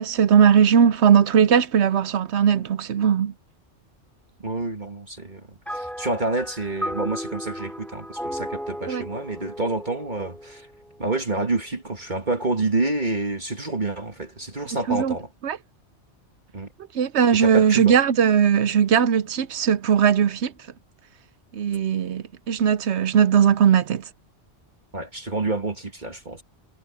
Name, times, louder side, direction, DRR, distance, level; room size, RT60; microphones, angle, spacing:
voice 1, 0.0-3.3 8.9-9.1 14.9-15.1 15.4-15.6 16.9-20.5 21.5-24.1, right 8 dB, 70° right, 1.0 m, -19 dB
voice 2, 4.4-10.7 11.0-15.3 16.5-16.7 17.4-18.0 24.9-26.4, right 2 dB, 40° right, 2.1 m, -28 dB
sound 1, 5.7-11.2, equal, ahead, 2.3 m, -35 dB
omnidirectional pair, 1.2 m